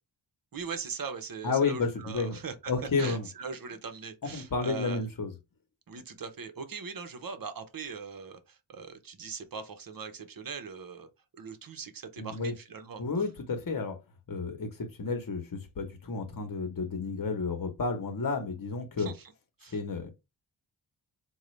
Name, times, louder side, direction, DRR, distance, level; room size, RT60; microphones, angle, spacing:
voice 1, 0.5-2.7 3.0-5.0 5.9-11.1 11.3-13.0 19.0-19.3 19.6-19.8, right 5 dB, 45° right, 0.9 m, -40 dB
voice 2, 1.4-2.4 2.7-3.3 4.2-5.3 12.2-12.5 13.0-14.0 14.3-19.1 19.7-20.1, left 4 dB, 45° left, 1.2 m, -31 dB
3.7 x 2.4 x 3.2 m
cardioid pair, 50°, 46 cm